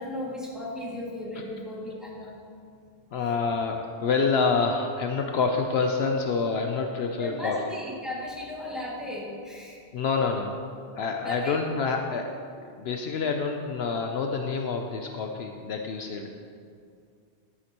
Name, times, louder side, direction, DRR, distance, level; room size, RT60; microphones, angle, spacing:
voice 1, 0.0-2.4 7.2-9.8 11.2-11.7, left 1 dB, ahead, -7 dB, 2.1 m, -35 dB
voice 2, 3.1-7.6 9.9-10.7 10.9-12.3 12.8-16.3, left 4 dB, 70° left, 3 dB, 0.8 m, -27 dB
11.5 x 9.4 x 2.9 m, 2.3 s
omnidirectional pair, 1.1 m